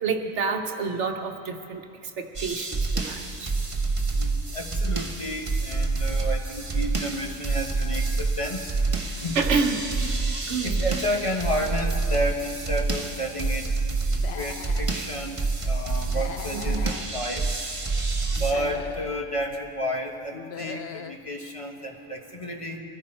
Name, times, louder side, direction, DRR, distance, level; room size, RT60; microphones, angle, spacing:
voice 1, 0.0-3.5 9.3-9.9 10.5-10.8 16.5-16.9, right 4 dB, 65° right, 5 dB, 1.3 m, -29 dB
sound 1, 2.3-18.5, right 3 dB, 30° right, 0.9 m, -27 dB
voice 2, 4.1-8.6 9.2-9.4 10.3-13.7 14.3-15.4 15.7-17.4 18.3-22.8, equal, 25° left, 1 dB, 1.1 m, -31 dB
Human voice / Animal, 14.1-14.9 16.1-17.1 18.3-19.2 20.3-21.2, left 8 dB, 60° left, 0.8 m, -39 dB
22.5 x 14.5 x 4.4 m, 2.5 s
omnidirectional pair, 1.3 m